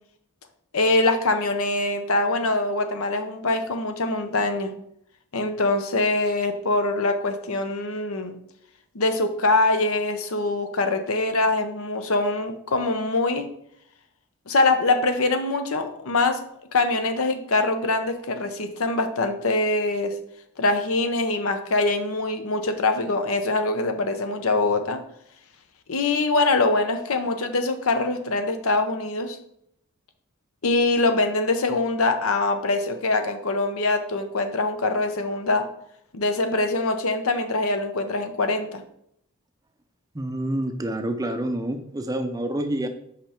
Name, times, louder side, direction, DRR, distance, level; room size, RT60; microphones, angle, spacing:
voice 1, 0.7-4.7 5.3-8.4 8.9-13.5 14.5-16.4 16.7-20.1 20.6-25.0 25.9-29.4 30.6-35.7 36.1-38.8, left 2 dB, 70° left, 7 dB, 0.8 m, -23 dB
voice 2, 40.1-42.9, right 1 dB, 15° right, 7 dB, 0.5 m, -27 dB
5.6 x 5.2 x 4.4 m, 0.73 s
head